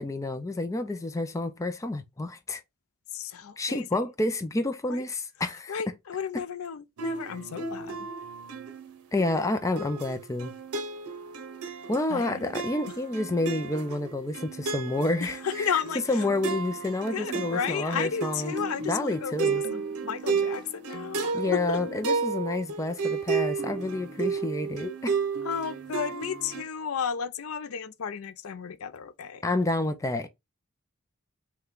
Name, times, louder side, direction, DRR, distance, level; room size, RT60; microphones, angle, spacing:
voice 1, 0.0-2.6 3.6-5.7 9.1-10.5 11.9-15.7 16.1-18.5 18.9-19.6 21.3-25.1 29.4-30.3, left 2 dB, 15° left, 0.4 m, -29 dB
voice 2, 3.1-4.0 4.9-5.1 5.7-8.1 12.1-12.5 12.9-13.0 15.2-16.3 17.1-21.8 25.4-29.4, left 7 dB, 70° left, 0.5 m, -33 dB
sound 1, 7.0-26.6, right 4 dB, 80° right, 0.8 m, -33 dB
sound 2, 15.8-21.3, right 5 dB, 50° right, 0.4 m, -46 dB
5.5 x 2.3 x 3.7 m
head